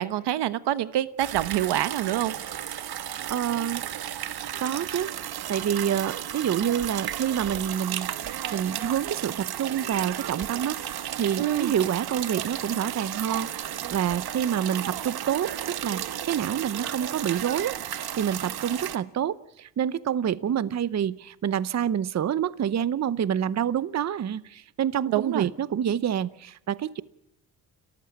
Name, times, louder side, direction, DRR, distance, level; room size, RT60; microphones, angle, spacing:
voice 1, 0.0-2.3 11.4-11.7 25.1-25.5, right 12 dB, 80° right, 15 dB, 1.1 m, -26 dB
sound 1, 1.2-19.0, right 11 dB, 65° right, 1.4 m, -34 dB
voice 2, 3.2-3.8 4.6-5.2 5.5-27.0, right 9 dB, 40° right, 18 dB, 0.8 m, -28 dB
29.5 x 14.5 x 8.6 m, 0.84 s
cardioid pair, 90°, 40 cm